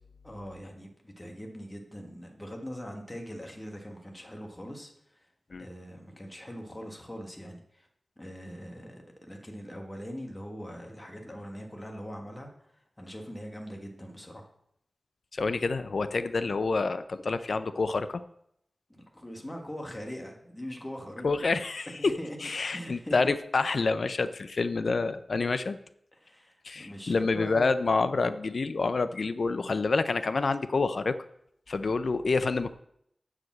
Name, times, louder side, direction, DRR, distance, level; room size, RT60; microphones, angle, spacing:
voice 1, 0.2-5.3 5.6-7.9 8.2-14.5 18.9-21.5 22.0-23.2 26.2-27.8, equal, 15° left, 1 dB, 1.4 m, -42 dB
voice 2, 15.3-18.2 21.2-25.8 26.6-31.2 31.7-32.7, left 3 dB, 70° left, 12 dB, 0.5 m, -28 dB
7.8 x 4.9 x 7.2 m, 0.73 s
wide cardioid pair, 100°, 0 cm